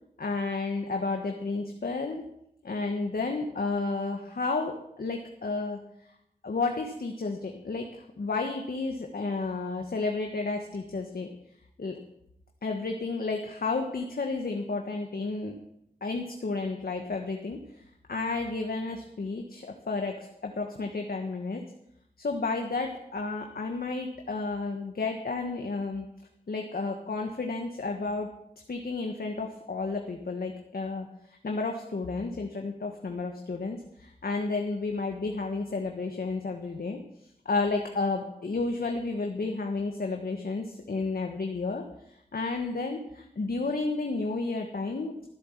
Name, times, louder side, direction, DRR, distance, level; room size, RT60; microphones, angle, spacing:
voice 1, 0.2-2.2 2.6-5.8 6.4-11.3 11.8-11.9 12.6-15.6 16.0-17.8 18.1-21.6 22.2-26.1 26.5-28.3 28.7-31.1 31.4-37.0 37.4-41.8 42.3-45.1, left 3 dB, 75° left, 3 dB, 1.5 m, -31 dB
14.0 x 8.0 x 7.3 m, 0.77 s
cardioid pair, 45°, 16 cm